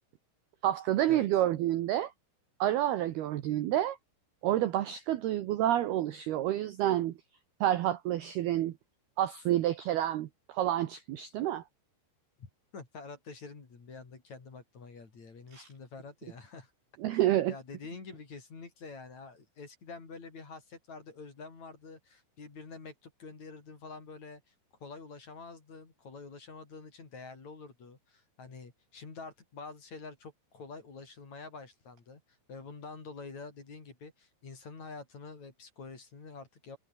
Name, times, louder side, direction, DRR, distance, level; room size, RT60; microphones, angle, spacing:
voice 1, 0.6-2.1 2.6-4.0 4.4-7.1 7.6-8.7 9.2-11.6 15.5-15.7 17.0-17.5, right 13 dB, 70° right, 2.5 m, -29 dB
voice 2, 12.4-16.7 17.5-24.5 24.8-32.2 32.5-36.8, left 4 dB, 35° left, 5.2 m, -47 dB
omnidirectional pair, 5.9 m